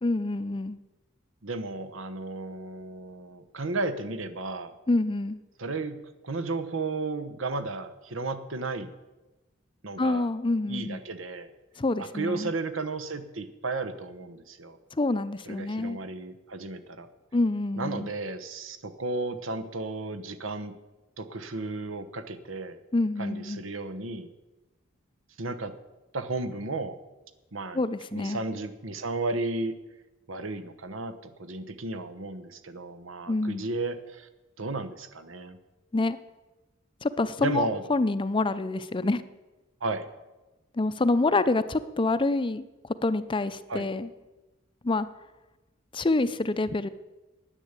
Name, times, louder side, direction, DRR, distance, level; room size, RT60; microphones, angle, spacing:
voice 1, 0.0-0.8 4.9-5.4 10.0-11.0 11.8-12.5 14.9-16.0 17.3-18.1 22.9-23.6 27.7-28.4 33.3-33.7 35.9-36.2 37.0-39.2 40.7-42.7 43.0-44.1 44.8-45.1 45.9-46.9, left 2 dB, 25° left, 14 dB, 0.5 m, -27 dB
voice 2, 1.4-4.7 5.6-6.0 6.2-8.9 9.8-10.3 10.7-11.5 12.0-14.8 15.5-17.1 17.8-20.7 21.2-22.8 23.2-24.3 25.4-25.7 26.1-27.0 27.5-27.8 28.1-29.8 30.3-34.3 34.6-35.6 37.4-37.8 39.8-40.1 43.7-43.9, right 3 dB, 80° right, 10 dB, 1.1 m, -33 dB
10.0 x 9.3 x 8.2 m, 1.1 s
head